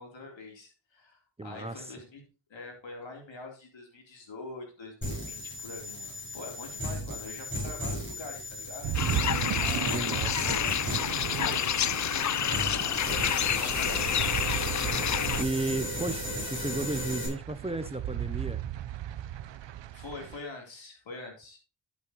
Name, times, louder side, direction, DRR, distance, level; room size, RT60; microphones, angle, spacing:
voice 1, 0.0-2.2 2.5-8.9 9.5-14.6 19.9-21.6, left 3 dB, 80° left, 1 dB, 3.7 m, -45 dB
voice 2, 1.4-1.9 9.9-10.5 13.1-13.2 15.4-18.6, right 2 dB, 15° right, 11 dB, 0.7 m, -34 dB
sound 1, 5.0-17.3, left 1 dB, 25° left, 6.7 m, -36 dB
sound 2, 8.8-20.4, right 11 dB, 75° right, 0.6 m, -36 dB
sound 3, 8.9-15.4, left 9 dB, 40° left, 0.4 m, -29 dB
11.5 x 8.4 x 3.1 m, 0.32 s
cardioid pair, 65°, 44 cm